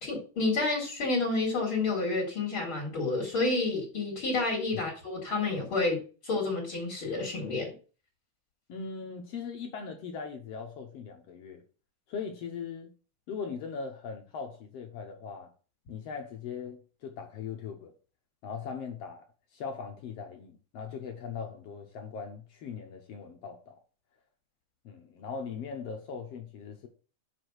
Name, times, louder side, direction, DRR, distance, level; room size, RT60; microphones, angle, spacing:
voice 1, 0.0-7.7, left 3 dB, 45° left, 2.5 m, -30 dB
voice 2, 8.7-11.6 12.1-12.9 13.3-15.5 15.9-17.9 18.4-19.2 19.5-23.8 24.8-26.9, left 6 dB, 65° left, 1.7 m, -40 dB
6.4 x 4.9 x 6.1 m
omnidirectional pair, 3.6 m